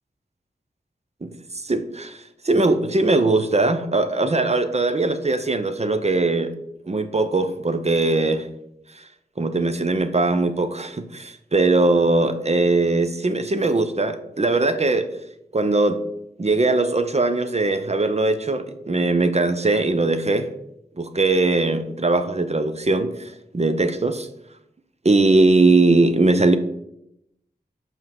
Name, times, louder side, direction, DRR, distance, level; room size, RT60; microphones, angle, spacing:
voice 1, 1.6-6.5 6.9-8.5 9.4-15.1 15.5-16.0 16.4-20.5 21.0-24.3 25.0-26.6, right 2 dB, 40° right, 9 dB, 0.7 m, -20 dB
5.5 x 4.6 x 5.8 m, 0.81 s
cardioid pair, 45°, 17 cm